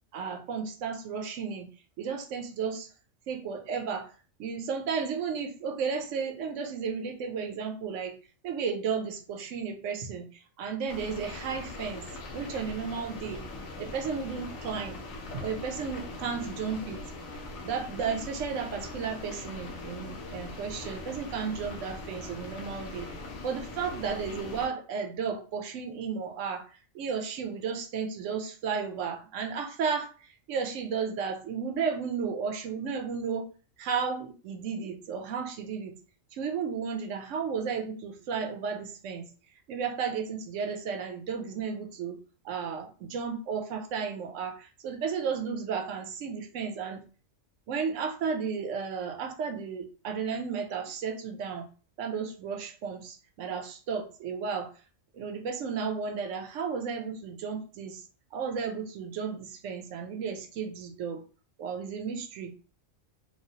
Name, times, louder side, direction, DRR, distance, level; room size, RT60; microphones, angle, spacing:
voice 1, 0.1-1.7 2.0-2.9 3.3-4.1 4.4-8.2 8.4-13.4 13.8-15.0 15.3-17.0 17.6-23.1 23.4-33.5 33.8-36.0 36.3-39.3 39.7-42.2 42.4-47.0 47.7-51.7 52.0-54.7 55.1-61.2 61.6-62.5, right 6 dB, 70° right, 3 dB, 0.9 m, -33 dB
sound 1, 10.9-24.7, left 2 dB, 85° left, 1.1 m, -41 dB
3.0 x 2.3 x 2.7 m, 0.38 s
omnidirectional pair, 1.4 m